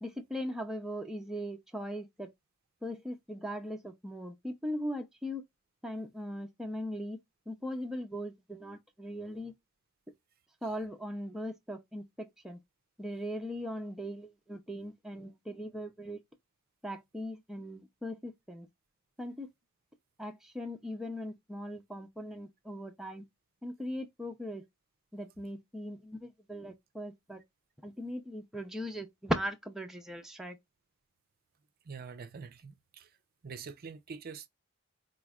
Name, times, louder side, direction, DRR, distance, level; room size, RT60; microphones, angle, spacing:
voice 1, 0.0-2.3 2.8-5.4 5.8-7.2 7.5-9.5 10.6-12.6 13.0-16.2 16.8-18.7 19.2-19.5 20.2-23.2 23.6-24.6 25.1-27.4 27.8-30.6, equal, ahead, 0.5 m, -39 dB
voice 2, 31.9-33.1 33.4-34.5, right 5 dB, 45° right, 0.5 m, -45 dB
4.3 x 3.0 x 2.3 m
head